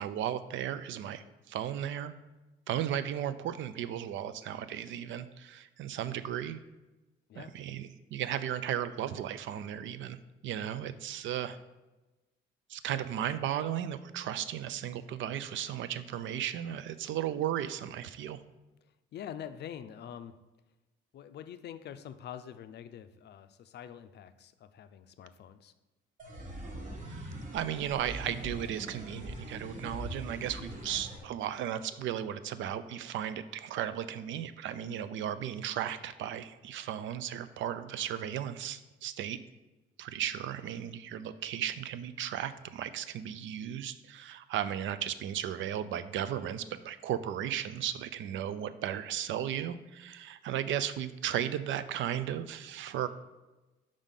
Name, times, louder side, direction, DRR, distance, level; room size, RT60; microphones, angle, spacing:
voice 1, 0.0-2.1 2.7-6.6 7.4-10.2 10.4-11.6 12.7-18.4 27.1-39.4 40.0-53.1, right 10 dB, 75° right, 13 dB, 0.4 m, -35 dB
voice 2, 19.1-20.4 21.1-25.7, left 9 dB, 60° left, 11 dB, 0.4 m, -45 dB
sound 1, 26.2-31.2, right 1 dB, 40° right, 1.2 m, -42 dB
5.0 x 3.6 x 5.6 m, 1.1 s
cardioid pair, 90°, 20 cm